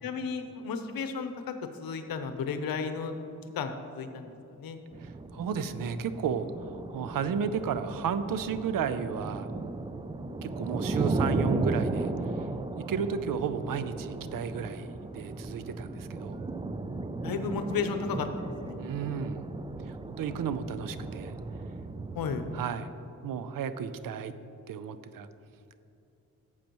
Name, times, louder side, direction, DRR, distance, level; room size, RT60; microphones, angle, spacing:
voice 1, 0.0-1.5 1.8-3.2 3.5-4.3 4.6-4.8 17.2-18.8 22.1-22.5, left 5 dB, 90° left, 7 dB, 0.7 m, -33 dB
sound 1, 4.9-22.6, right 3 dB, 15° right, 0.4 m, -35 dB
voice 2, 5.0-9.5 10.4-12.1 12.8-16.4 18.8-19.5 19.9-21.3 22.5-22.9 23.2-24.3 24.7-25.3, right 7 dB, 75° right, 12 dB, 0.5 m, -33 dB
11.5 x 7.5 x 3.0 m, 2.8 s
cardioid pair, 75°, 34 cm